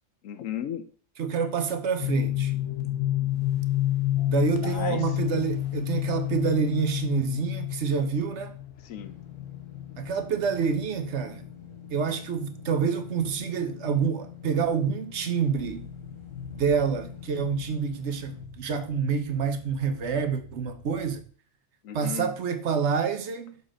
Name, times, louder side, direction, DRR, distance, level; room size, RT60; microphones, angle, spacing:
voice 1, 0.2-0.9 4.6-5.2 8.8-9.1 21.8-22.3, left 10 dB, 90° left, 1.1 m, -35 dB
voice 2, 1.2-2.5 4.3-8.5 10.0-11.4 11.9-15.9 16.5-21.2 21.9-23.6, right 6 dB, 65° right, 1.1 m, -27 dB
sound 1, 2.0-21.2, left 13 dB, 70° left, 1.2 m, -32 dB
sound 2, 9.0-18.4, left 10 dB, 25° left, 1.2 m, -47 dB
6.8 x 4.1 x 5.0 m
omnidirectional pair, 1.3 m